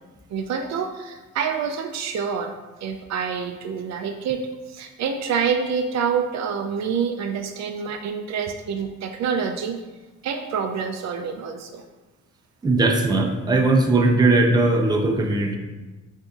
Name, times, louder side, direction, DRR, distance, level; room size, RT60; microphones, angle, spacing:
voice 1, 0.3-2.5 2.8-9.8 10.2-11.8, right 6 dB, 65° right, 5 dB, 0.4 m, -27 dB
voice 2, 12.6-15.6, right 2 dB, 15° right, 2 dB, 0.6 m, -19 dB
6.8 x 2.7 x 2.4 m, 1.2 s
cardioid pair, 90°, 30 cm